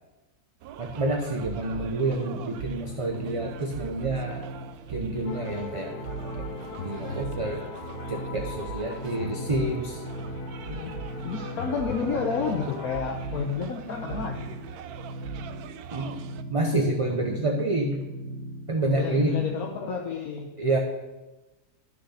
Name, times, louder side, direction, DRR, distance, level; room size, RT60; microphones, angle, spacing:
sound 1, 0.6-16.4, right 8 dB, 75° right, 1.1 m, -41 dB
voice 1, 0.8-4.5 4.9-5.9 6.8-7.6 8.1-10.0 15.9-16.2 16.5-18.0 18.7-19.4 20.6-20.8, right 2 dB, 30° right, 1 dB, 0.7 m, -28 dB
sound 2, 1.6-19.8, right 1 dB, 50° right, 1.7 m, -40 dB
sound 3, 5.3-13.0, left 5 dB, 90° left, 1.4 m, -39 dB
voice 2, 10.7-14.6 18.9-20.5, left 5 dB, 70° left, 1 dB, 1.3 m, -31 dB
10.5 x 6.8 x 5.7 m, 1.1 s
omnidirectional pair, 1.6 m